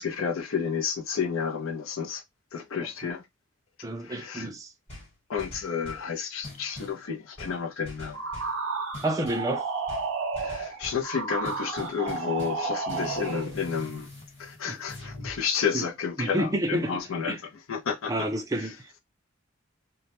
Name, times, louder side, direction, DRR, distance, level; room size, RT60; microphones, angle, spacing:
voice 1, 0.0-2.2 2.5-3.3 3.8-4.5 5.3-8.2 10.4-14.1 14.4-17.4 17.7-18.3 18.6-18.7, left 6 dB, 85° left, 0.5 m, -31 dB
voice 2, 3.8-4.7 9.0-9.7 14.7-14.8 15.7-15.9 16.2-17.0 17.3-17.4 18.1-19.0, right 1 dB, 15° right, 0.4 m, -29 dB
sound 1, 4.9-6.1 6.4-7.0 7.4-8.6 8.9-9.5 9.9-11.1 11.4-12.6 12.9-15.4, left 2 dB, 30° left, 1.1 m, -43 dB
sound 2, 8.1-13.5, right 4 dB, 70° right, 0.6 m, -32 dB
2.1 x 2.1 x 2.9 m
head